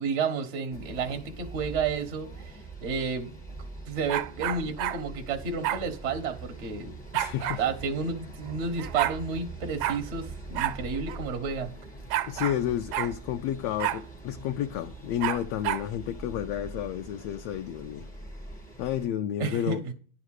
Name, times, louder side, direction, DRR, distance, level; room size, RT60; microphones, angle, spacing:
voice 1, 0.0-3.3 3.9-6.9 7.6-11.7 19.4-19.9, right 5 dB, 60° right, 0.7 m, -31 dB
sound 1, 0.7-19.1, right 3 dB, 10° left, 0.5 m, -43 dB
sound 2, 4.1-5.0 5.6-5.8 7.1-7.6 8.5-8.6 8.8-9.2 9.8-10.0 10.6-10.8 11.1-11.2 12.1-12.6 12.9-13.1 13.8-14.0 15.2-15.9, right 14 dB, 80° right, 1.8 m, -29 dB
voice 2, 7.1-7.6 12.3-18.1 18.8-19.9, left 11 dB, 80° left, 1.6 m, -31 dB
10.5 x 4.9 x 6.4 m
omnidirectional pair, 3.4 m